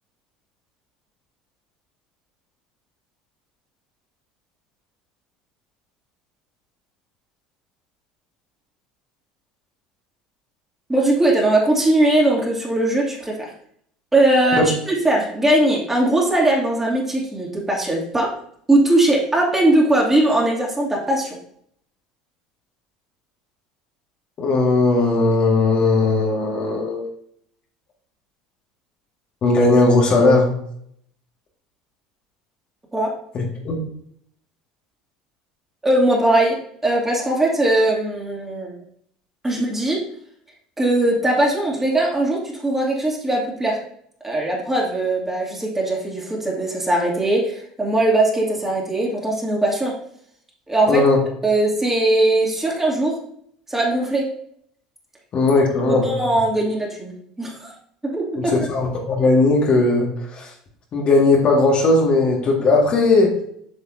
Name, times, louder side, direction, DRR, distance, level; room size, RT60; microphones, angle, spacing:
voice 1, 10.9-13.5 14.1-18.3 18.7-21.4 32.9-33.1 35.8-36.5 36.8-38.7 39.4-40.0 40.8-43.8 44.2-49.9 50.7-51.0 51.4-53.2 53.7-54.2 55.9-57.7 58.0-58.5, right 1 dB, 15° right, -3 dB, 2.5 m, -20 dB
voice 2, 24.4-27.0 29.4-30.6 33.3-33.8 50.9-51.2 55.3-56.1 58.4-60.5 60.9-63.4, left 3 dB, 45° left, -1 dB, 1.9 m, -17 dB
8.1 x 5.5 x 2.7 m, 0.67 s
hypercardioid pair, 80°, 2 cm